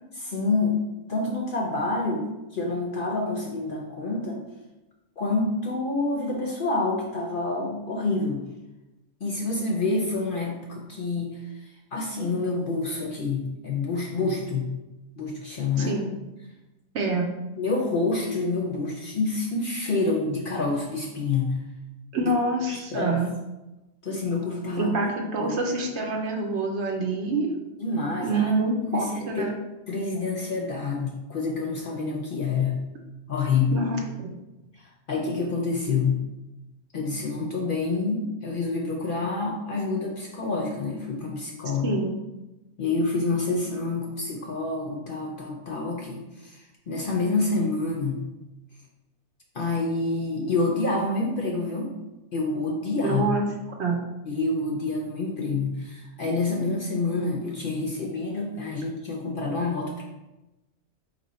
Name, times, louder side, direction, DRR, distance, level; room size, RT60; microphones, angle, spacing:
voice 1, 0.2-0.8 1.1-4.4 5.2-8.4 9.2-11.6 11.9-14.7 15.2-16.0 17.6-21.6 22.2-22.3 22.7-23.2 24.0-25.0 25.4-25.5 27.8-28.5 28.9-29.5 29.9-32.8 33.3-33.8 34.8-36.2 36.9-42.0 42.8-48.2 49.5-51.9 52.3-53.3 54.3-60.0, left 3 dB, 55° left, 0 dB, 0.7 m, -27 dB
voice 2, 15.8-16.1 16.9-17.3 22.1-23.3 24.8-27.6 28.2-29.5 33.7-34.3 41.8-42.2 53.0-53.5 53.8-54.0, right 2 dB, 65° right, 2 dB, 0.9 m, -26 dB
4.3 x 3.0 x 4.1 m, 1.0 s
omnidirectional pair, 1.4 m